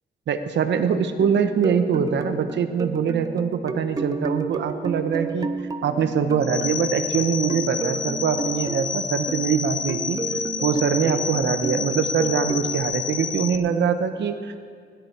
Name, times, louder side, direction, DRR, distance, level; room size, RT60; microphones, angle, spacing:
voice 1, 0.3-5.5 5.8-10.2 10.6-14.6, right 7 dB, 75° right, 8 dB, 1.0 m, -23 dB
sound 1, 1.2-6.8 7.5-9.6 9.9-12.8, right 4 dB, 20° right, 0.5 m, -32 dB
sound 2, 6.4-13.6, left 6 dB, 45° left, 0.5 m, -29 dB
17.0 x 11.5 x 4.6 m, 2.2 s
wide cardioid pair, 150°, 19 cm